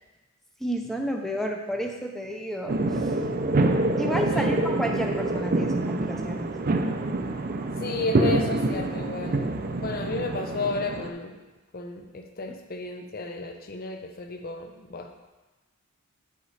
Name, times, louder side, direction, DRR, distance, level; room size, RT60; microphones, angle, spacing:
voice 1, 0.6-3.2 4.0-6.6 12.5-12.6, equal, ahead, 2 dB, 0.6 m, -31 dB
sound 1, 2.7-11.1, right 2 dB, 40° right, 0.5 m, -26 dB
voice 2, 7.8-9.4 9.8-11.3 11.7-15.1, left 3 dB, 45° left, 5 dB, 0.6 m, -32 dB
8.9 x 4.9 x 4.1 m, 1.2 s
head